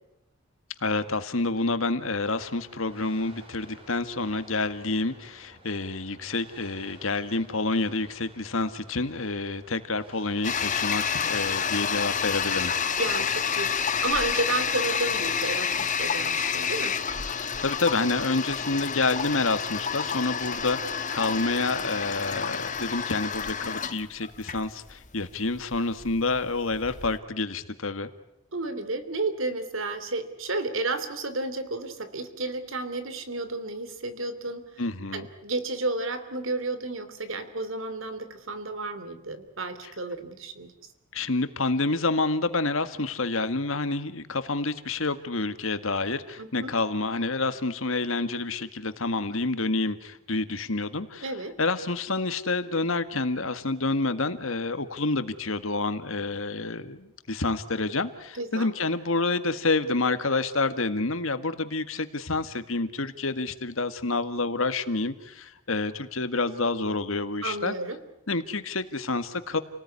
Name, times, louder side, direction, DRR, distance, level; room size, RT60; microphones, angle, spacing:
voice 1, 0.8-12.7 17.4-28.1 34.8-35.3 41.1-51.3 51.6-67.7 68.3-69.6, left 3 dB, 70° left, 11 dB, 1.8 m, -28 dB
sound 1, 2.0-14.3, right 1 dB, 25° right, 5.0 m, -52 dB
Toilet flush, 10.4-27.2, left 7 dB, 35° left, 1.4 m, -29 dB
voice 2, 13.0-17.0 28.5-34.6 35.1-40.7 46.4-46.7 51.2-51.5 58.3-58.7 67.4-68.0, right 2 dB, 70° right, 11 dB, 2.9 m, -32 dB
30.0 x 19.0 x 9.7 m, 0.85 s
head